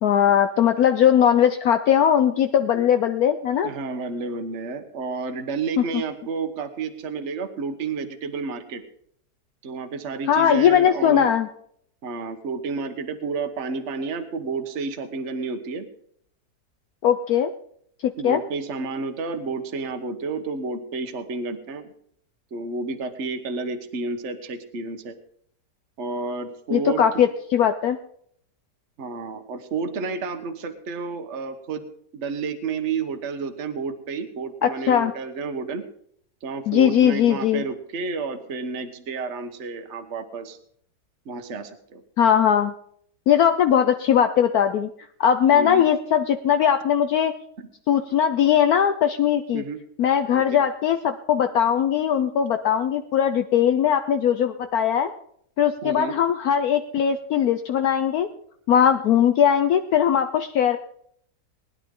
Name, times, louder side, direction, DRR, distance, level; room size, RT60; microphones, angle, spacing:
voice 1, 0.0-3.7 5.8-5.9 10.3-11.5 17.0-17.5 18.0-18.4 26.7-28.0 34.6-35.1 36.7-37.6 42.2-42.7 43.3-44.9 45.2-47.3 47.9-49.6 50.0-55.1 55.6-58.3 58.7-60.8, left 9 dB, 65° left, 8 dB, 1.1 m, -20 dB
voice 2, 3.6-8.8 9.6-11.3 12.0-15.9 18.2-21.9 22.5-25.1 26.0-27.2 29.0-31.9 32.1-35.8 36.4-40.6 41.2-42.0 45.5-45.8 47.6-47.7 49.5-49.8 50.3-50.6 55.8-56.1, right 4 dB, 45° right, 8 dB, 1.4 m, -31 dB
20.0 x 11.0 x 3.8 m, 0.66 s
omnidirectional pair, 1.8 m